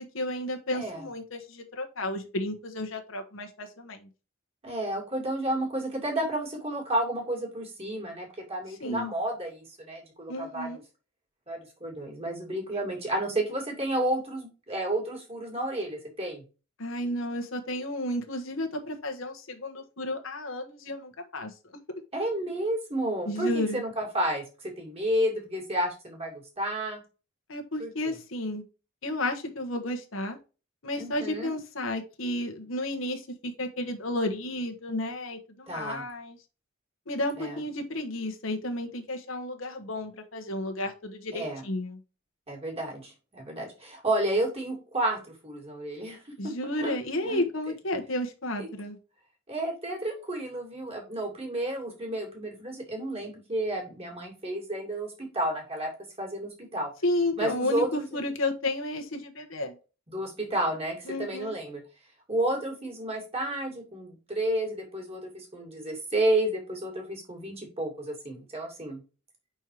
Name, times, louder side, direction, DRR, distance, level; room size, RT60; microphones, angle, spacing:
voice 1, 0.0-4.1 8.8-9.1 10.3-10.8 16.8-21.5 23.2-23.8 27.5-28.6 29.0-30.4 30.8-36.4 37.1-42.0 46.4-49.0 57.0-59.8 61.1-61.5, left 1 dB, 75° left, 4 dB, 1.3 m, -32 dB
voice 2, 4.6-10.8 11.5-16.4 22.1-27.0 27.8-28.2 31.0-31.5 35.7-36.0 37.4-37.6 41.3-41.6 42.5-46.2 46.8-46.9 47.2-47.4 48.6-48.7 49.5-55.9 56.2-56.9 57.4-58.2 60.1-61.8 62.3-69.0, right 1 dB, 30° right, 0 dB, 2.5 m, -31 dB
5.4 x 4.5 x 4.7 m, 0.32 s
head